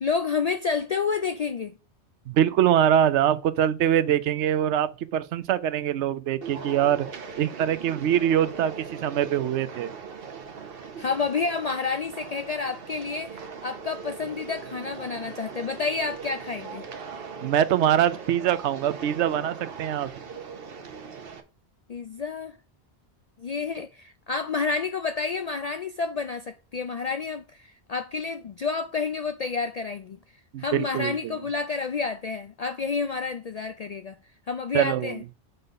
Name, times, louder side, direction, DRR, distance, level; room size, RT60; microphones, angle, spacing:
voice 1, 0.0-1.7 10.8-16.9 21.9-22.6 23.4-30.2 30.6-34.2 34.5-35.2, left 5 dB, 60° left, 0.4 m, -29 dB
voice 2, 2.3-7.1 7.4-9.9 17.4-20.1 30.5-31.3 34.7-35.2, right 10 dB, 85° right, 0.9 m, -23 dB
sound 1, 6.4-21.4, right 6 dB, 60° right, 1.1 m, -40 dB
6.6 x 3.9 x 5.3 m
omnidirectional pair, 1.1 m